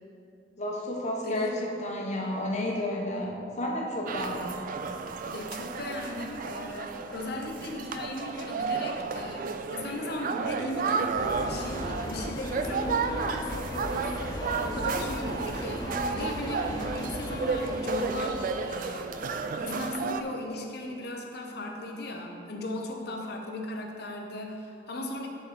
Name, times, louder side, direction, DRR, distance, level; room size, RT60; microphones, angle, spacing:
voice 1, 0.6-4.5, left 1 dB, 40° left, -2 dB, 1.1 m, -31 dB
voice 2, 1.2-1.5 5.3-11.1 11.4-19.1 19.6-25.3, left 1 dB, 60° left, 2 dB, 0.8 m, -37 dB
sound 1, 4.1-20.2, right 5 dB, 50° right, 0.4 m, -32 dB
sound 2, 11.2-18.8, left 2 dB, 20° left, 0.3 m, -37 dB
9.7 x 4.1 x 4.2 m, 2.6 s
head